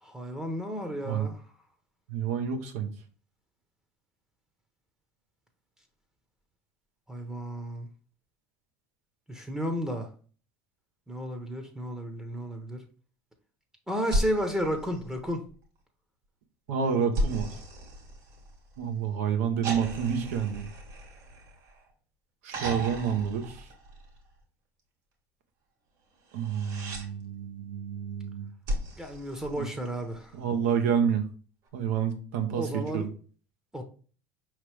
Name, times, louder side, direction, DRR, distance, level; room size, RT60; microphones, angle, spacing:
voice 1, 0.0-1.4 7.1-7.9 9.3-10.1 11.1-12.8 13.9-15.4 29.0-30.3 32.5-33.1 33.7-33.8, equal, 5° right, 0.9 m, -33 dB
voice 2, 2.1-2.9 16.7-17.5 18.8-20.7 22.4-23.6 26.3-28.5 29.5-29.7 30.3-31.2 31.7-33.1, right 7 dB, 80° right, 0.9 m, -29 dB
sound 1, 14.0-15.6 17.1-18.8 19.6-21.9 22.5-24.3 26.3-27.1 28.7-30.1 31.7-31.8, right 1 dB, 60° right, 1.6 m, -35 dB
5.0 x 3.1 x 3.3 m
hypercardioid pair, 85°, 8 cm